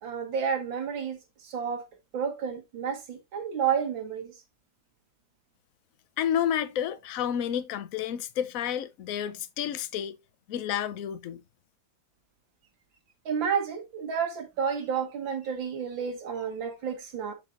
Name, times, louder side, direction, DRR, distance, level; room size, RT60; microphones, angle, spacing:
voice 1, 0.0-1.9 2.1-4.3 13.3-17.3, right 7 dB, 70° right, 2.3 m, -31 dB
voice 2, 6.2-10.2 10.5-11.4, left 9 dB, 65° left, 0.9 m, -30 dB
11.0 x 4.5 x 2.5 m
omnidirectional pair, 2.2 m